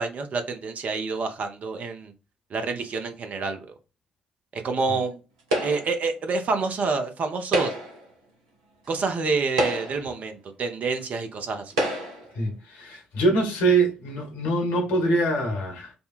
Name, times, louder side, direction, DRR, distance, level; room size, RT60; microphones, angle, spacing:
voice 1, 0.0-2.1 2.5-3.7 4.5-5.2 5.6-7.7 8.9-11.7, right 4 dB, 50° right, 0.7 m, -28 dB
sound 1, 5.5-6.0 7.4-8.1 8.9-9.0 9.5-10.2 11.0-11.1 11.7-12.3, right 1 dB, 80° right, 0.8 m, -27 dB
voice 2, 12.3-15.9, right 2 dB, 65° left, 1.2 m, -24 dB
5.3 x 2.2 x 2.4 m
figure-of-eight pair, 40°, 3 cm